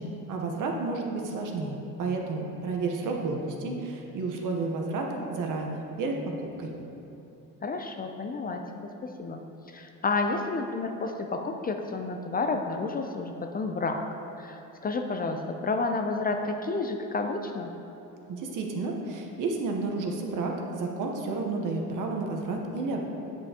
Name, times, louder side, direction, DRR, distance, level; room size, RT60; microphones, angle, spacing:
voice 1, 0.0-6.7 18.3-23.1, right 3 dB, 60° right, 1 dB, 1.0 m, -31 dB
voice 2, 7.6-8.9 9.2-9.4 9.7-14.0 14.4-17.7, left 3 dB, 25° left, 4 dB, 0.4 m, -30 dB
8.8 x 5.5 x 2.9 m, 3.0 s
cardioid pair, 95°, 35 cm